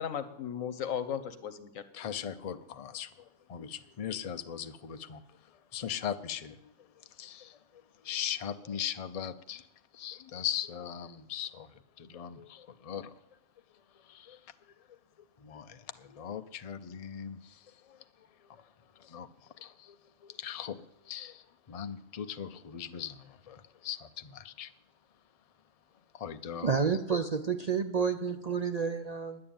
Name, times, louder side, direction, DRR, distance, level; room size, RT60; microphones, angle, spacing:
voice 1, 0.0-2.1, left 8 dB, 85° left, 11 dB, 1.4 m, -36 dB
voice 2, 1.9-5.2 5.7-6.7 7.2-7.6 8.0-9.6 9.9-11.7 12.0-13.1 14.1-14.4 15.4-17.6 17.9-18.0 18.5-18.6 19.0-19.3 19.6-20.0 20.2-20.8 21.1-24.7 26.1-26.8, left 9 dB, 40° left, 10 dB, 0.5 m, -39 dB
voice 3, 26.6-29.4, right 6 dB, 45° right, 8 dB, 0.5 m, -30 dB
10.5 x 9.4 x 8.8 m, 0.91 s
omnidirectional pair, 1.4 m